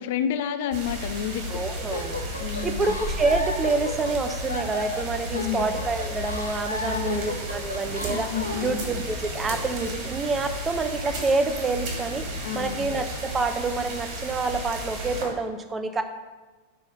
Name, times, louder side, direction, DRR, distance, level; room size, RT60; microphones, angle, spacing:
voice 1, 0.0-1.6 2.4-2.9 5.3-5.7 6.8-7.3 8.1-8.8 12.4-12.9, left 9 dB, 50° left, 10 dB, 0.6 m, -30 dB
sound 1, 0.7-15.2, right 1 dB, 45° right, 3.0 m, -33 dB
voice 2, 1.5-2.2 2.6-8.3 8.6-12.3 12.5-16.0, right 3 dB, 20° right, 7 dB, 0.9 m, -27 dB
sound 2, 1.9-8.7, left 2 dB, 80° left, 1.0 m, -34 dB
8.4 x 5.5 x 6.2 m, 1.3 s
figure-of-eight pair, 90°, 0 cm